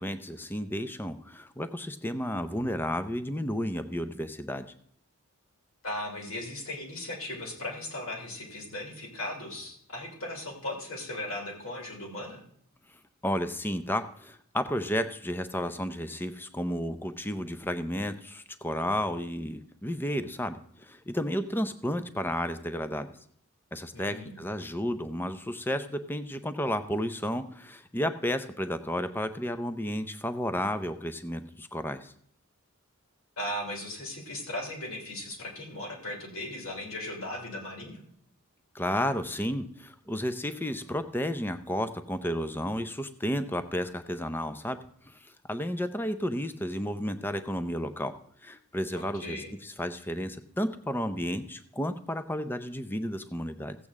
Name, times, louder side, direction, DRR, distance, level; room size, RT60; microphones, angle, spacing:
voice 1, 0.0-4.7 13.2-23.1 23.7-32.1 38.7-44.8 45.1-48.1 48.4-53.8, equal, 10° left, 10 dB, 0.5 m, -32 dB
voice 2, 5.8-12.4 23.9-24.4 33.4-38.0 49.2-49.5, left 1 dB, 60° left, -1 dB, 3.2 m, -37 dB
15.5 x 8.4 x 3.6 m, 0.66 s
head